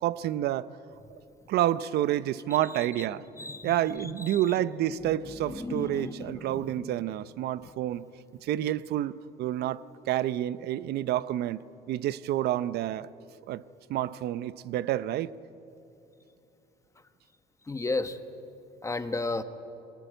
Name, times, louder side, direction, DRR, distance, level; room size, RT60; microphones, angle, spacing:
voice 1, 0.0-0.8 1.1-1.2 1.5-3.2 3.6-8.1 8.4-13.1 13.5-13.6 13.9-15.3, right 12 dB, 75° right, 17 dB, 0.7 m, -29 dB
voice 2, 3.4-3.7 4.0-4.4 5.0-6.9 7.6-7.7 17.7-18.2 18.8-19.4, left 3 dB, 20° left, 9 dB, 1.3 m, -34 dB
22.0 x 19.0 x 9.1 m, 2.8 s
cardioid pair, 110°, 17 cm